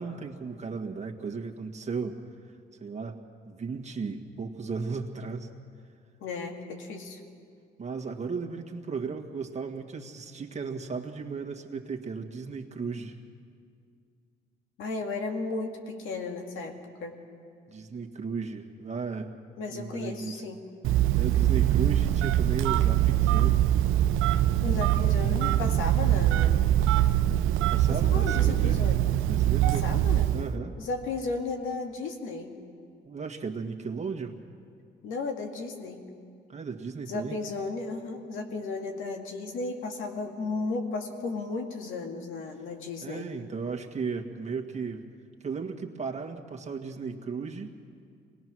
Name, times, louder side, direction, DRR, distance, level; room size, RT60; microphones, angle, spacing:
voice 1, 0.0-2.2 2.8-3.2 3.4-5.5 7.8-13.2 17.7-19.3 19.7-20.4 21.2-23.7 27.7-28.9 29.2-29.9 30.3-30.8 33.0-34.4 36.5-37.4 43.0-45.1 45.4-47.7, right 5 dB, 35° right, 3 dB, 1.8 m, -35 dB
voice 2, 6.2-7.2 14.8-16.8 17.0-17.2 19.6-20.6 24.6-26.7 27.9-29.0 29.8-30.3 30.8-32.5 35.0-36.0 37.1-43.3, left 3 dB, 85° left, 3 dB, 2.1 m, -34 dB
Telephone, 20.8-30.5, right 12 dB, 85° right, 0.6 m, -23 dB
24.0 x 19.5 x 6.3 m, 2.3 s
cardioid pair, 90°, 20 cm